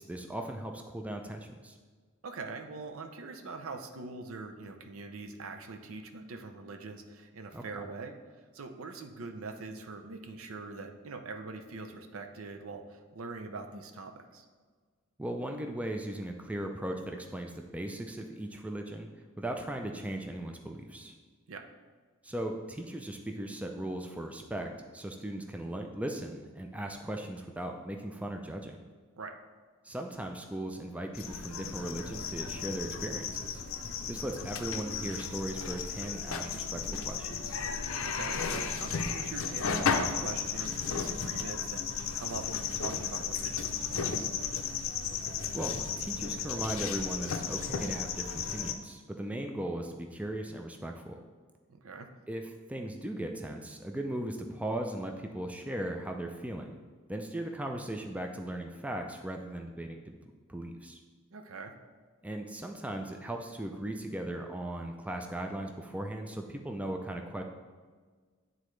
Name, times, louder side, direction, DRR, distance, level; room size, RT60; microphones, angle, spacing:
voice 1, 0.0-1.8 7.5-7.6 15.2-19.1 19.4-21.2 22.2-28.8 29.8-33.6 34.1-37.6 45.5-51.2 52.3-52.4 52.7-56.8 57.1-60.1 60.5-61.0 62.2-67.4, right 1 dB, 5° right, 3 dB, 0.3 m, -38 dB
voice 2, 2.2-8.1 8.5-14.5 21.5-21.6 29.2-29.3 38.0-44.3 51.7-52.1 61.3-61.7, right 3 dB, 75° right, 5 dB, 0.6 m, -43 dB
sound 1, 31.1-48.7, left 6 dB, 65° left, 0.5 m, -34 dB
9.6 x 3.8 x 3.1 m, 1.5 s
head